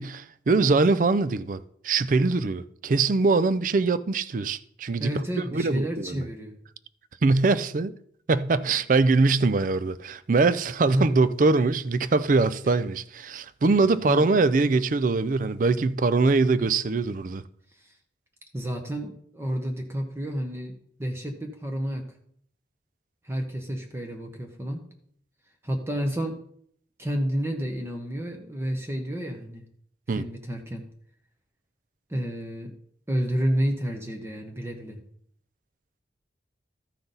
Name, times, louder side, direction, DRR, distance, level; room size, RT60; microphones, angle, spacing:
voice 1, 0.0-5.1 5.5-6.3 7.2-7.9 8.3-17.4 30.1-30.2, right 3 dB, 45° right, 0.4 m, -23 dB
voice 2, 5.0-6.6 10.9-11.2 14.0-14.4 17.8-18.0 18.5-22.0 23.2-24.8 25.6-26.4 27.0-29.6 30.1-30.8 32.1-32.7 33.1-35.0, equal, 15° right, 0.9 m, -30 dB
13.5 x 5.8 x 4.0 m
head